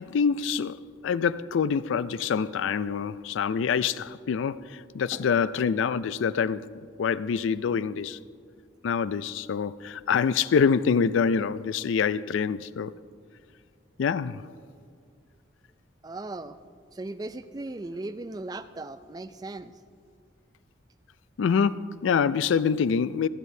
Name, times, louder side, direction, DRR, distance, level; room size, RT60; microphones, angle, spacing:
voice 1, 0.0-6.7 7.0-8.2 8.8-12.9 14.0-14.5 21.4-23.3, left 6 dB, 85° left, 0.4 m, -26 dB
voice 2, 5.1-5.5 16.0-16.6 16.9-19.7, right 2 dB, 20° right, 0.3 m, -38 dB
25.5 x 9.4 x 2.7 m
head